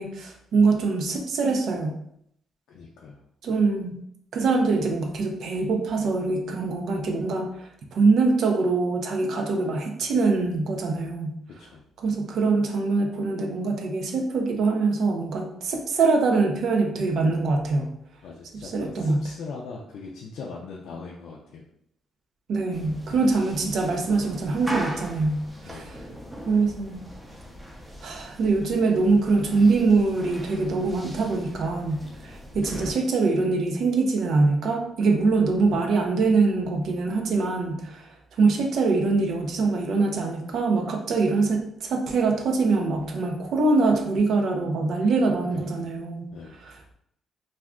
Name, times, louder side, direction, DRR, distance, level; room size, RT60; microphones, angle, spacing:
voice 1, 0.0-1.9 3.4-3.9 4.3-11.3 12.0-17.9 18.5-19.2 22.5-26.0 26.4-27.0 28.0-38.1 38.4-46.3 46.6-46.9, right 3 dB, 70° right, 3 dB, 0.5 m, -23 dB
voice 2, 2.7-3.2 11.6-11.8 18.2-21.6 25.6-25.9 45.5-45.9 46.3-46.6, left 4 dB, 80° left, -2 dB, 0.4 m, -40 dB
sound 1, 22.7-32.9, right 1 dB, 10° right, 0.6 m, -39 dB
2.4 x 2.2 x 3.6 m, 0.72 s
cardioid pair, 90°, 0 cm